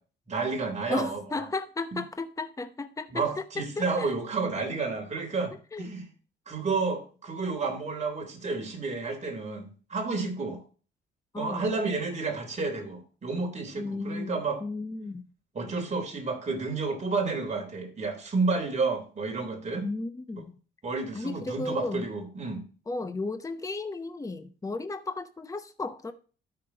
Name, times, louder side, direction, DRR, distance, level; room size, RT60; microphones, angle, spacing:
voice 1, 0.3-1.5 3.1-6.1 6.5-10.6 11.4-14.6 15.5-19.9 20.8-22.6, right 4 dB, 35° right, 2 dB, 3.4 m, -31 dB
voice 2, 0.9-4.1 5.7-5.9 11.3-11.7 13.8-15.3 19.8-20.6 21.1-22.1 22.9-26.1, left 3 dB, 15° left, 9 dB, 0.9 m, -34 dB
13.0 x 5.9 x 2.9 m, 0.37 s
cardioid pair, 90°, 20 cm